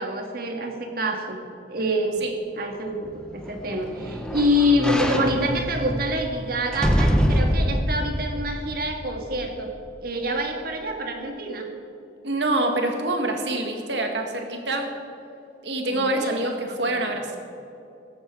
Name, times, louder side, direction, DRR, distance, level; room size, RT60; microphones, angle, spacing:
voice 1, 0.0-1.4 1.7-2.2 2.6-11.7 15.8-16.4 16.8-17.1, equal, 55° right, 3 dB, 1.8 m, -26 dB
sound 1, 3.1-9.4 9.9-10.0, equal, 5° left, 0.9 m, -25 dB
voice 2, 12.2-14.9 15.6-17.4, right 2 dB, 75° right, 3 dB, 2.0 m, -26 dB
14.5 x 13.0 x 4.7 m, 2.8 s
head